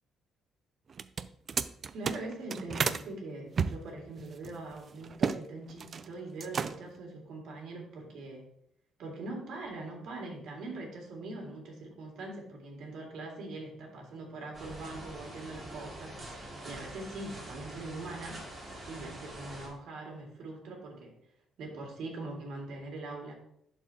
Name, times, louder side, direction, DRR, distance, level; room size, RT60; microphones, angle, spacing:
sound 1, 0.9-3.0 3.5-5.4 5.7-6.1 6.4-7.0, right 6 dB, 45° right, 0.3 m, -33 dB
voice 1, 1.9-8.4 9.0-18.4 18.9-21.2 21.6-23.3, right 2 dB, 70° right, 0 dB, 2.2 m, -42 dB
sound 2, 14.5-19.7, right 1 dB, 25° right, 2.7 m, -45 dB
11.0 x 4.3 x 2.9 m, 0.71 s
cardioid pair, 105°, 0 cm